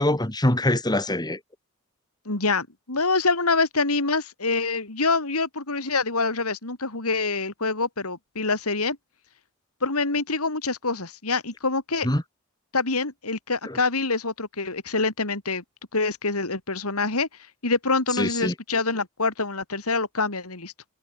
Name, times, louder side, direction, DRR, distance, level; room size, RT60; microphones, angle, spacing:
voice 1, 0.0-1.4 12.0-12.2 13.6-13.8 18.1-18.5, left 1 dB, 20° left, 2.9 m, -24 dB
voice 2, 2.3-9.0 9.8-12.1 12.7-15.6 15.9-17.3 17.6-20.7, left 3 dB, 85° left, 3.6 m, -25 dB
head